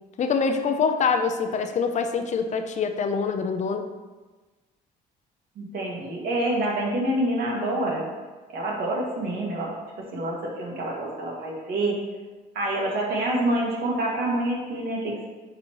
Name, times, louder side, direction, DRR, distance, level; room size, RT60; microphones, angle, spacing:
voice 1, 0.2-3.9, left 5 dB, 45° left, 7 dB, 0.6 m, -25 dB
voice 2, 5.6-8.1 8.5-12.0 12.6-15.2, right 1 dB, 65° right, -2 dB, 2.0 m, -27 dB
9.3 x 4.3 x 3.0 m, 1.3 s
cardioid pair, 110°, 17 cm